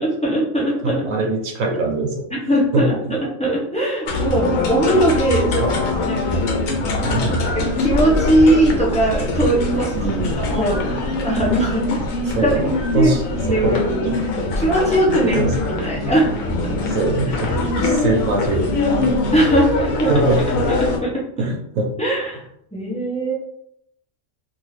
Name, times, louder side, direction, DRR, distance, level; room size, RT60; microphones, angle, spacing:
voice 1, 0.0-1.1 2.3-5.7 6.0-6.5 7.5-9.9 10.4-12.6 12.9-13.1 13.4-14.0 14.6-15.4 15.8-16.3 19.3-20.1 20.7-21.2 22.0-22.4 22.7-23.3, right 1 dB, 5° left, -6 dB, 0.6 m, -20 dB
voice 2, 0.8-2.3 2.7-3.1 5.6-5.8 7.0-7.4 9.9-10.3 12.3-13.7 14.0-14.2 15.2-15.5 16.7-19.4 20.1-20.4 21.4-21.9, right 2 dB, 80° right, 1 dB, 1.1 m, -23 dB
sound 1, 4.1-21.0, left 2 dB, 80° left, 1.0 m, -22 dB
2.6 x 2.6 x 3.1 m, 0.74 s
omnidirectional pair, 1.4 m